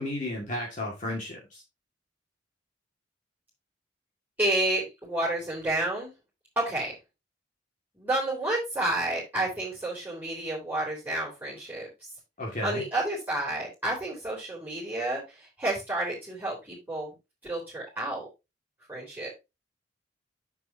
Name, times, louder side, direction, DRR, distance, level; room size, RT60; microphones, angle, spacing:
voice 1, 0.0-1.6 12.4-12.8, left 1 dB, 45° left, -1 dB, 2.4 m, -33 dB
voice 2, 4.4-6.1 6.6-6.9 8.0-11.9 12.6-17.1 17.4-18.3 18.9-19.3, right 1 dB, 10° right, -6 dB, 3.6 m, -30 dB
9.3 x 7.2 x 2.9 m, 0.24 s
head